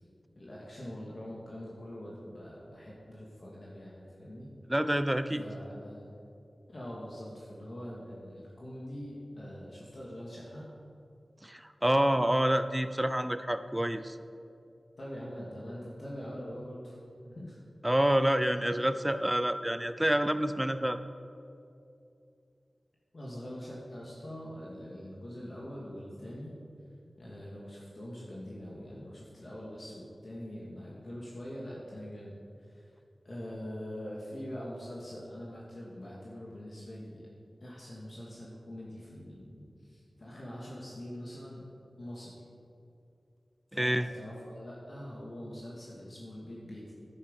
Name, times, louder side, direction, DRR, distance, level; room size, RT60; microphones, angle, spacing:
voice 1, 0.4-4.5 5.4-6.1 6.7-10.7 15.0-17.0 17.2-17.6 23.1-26.5 27.2-32.3 32.6-32.9 33.2-37.3 37.6-41.6 42.0-42.3 43.7-46.9, equal, 55° left, -5 dB, 2.2 m, -43 dB
voice 2, 4.7-5.4 11.4-14.2 17.8-21.0 43.7-44.1, right 1 dB, 10° right, 11 dB, 0.6 m, -28 dB
10.5 x 10.0 x 5.5 m, 2.5 s
wide cardioid pair, 65°, 0 cm